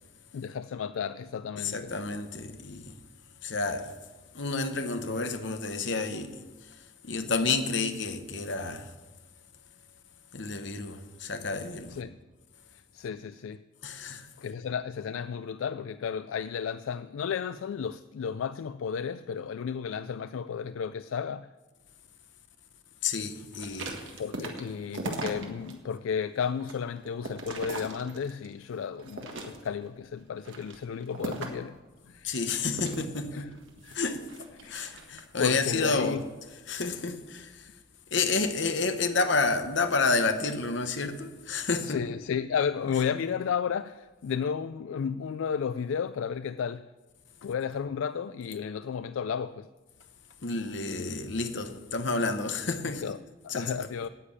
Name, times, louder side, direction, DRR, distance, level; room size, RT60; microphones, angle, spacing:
voice 1, 0.3-1.9 11.9-12.2 12.9-13.6 14.4-21.5 24.2-31.8 32.1-32.4 33.3-33.5 33.8-34.0 34.6-34.8 35.1-36.2 41.6-46.8 47.4-49.7 52.9-53.2 53.4-54.1, left 7 dB, 80° left, 0.3 m, -33 dB
voice 2, 1.6-3.0 3.4-3.9 4.3-6.8 7.0-8.9 10.3-12.0 13.8-14.3 23.0-24.0 32.2-33.5 33.9-34.3 34.7-36.2 36.7-37.7 38.1-42.0 50.4-53.0 53.5-53.9, left 3 dB, 60° left, 1.0 m, -30 dB
sound 1, 23.5-25.7 26.2-28.5 29.0-29.9 30.4-31.7 32.7-35.4 35.9-36.2, right 2 dB, 70° right, 1.7 m, -39 dB
10.0 x 8.4 x 8.7 m
head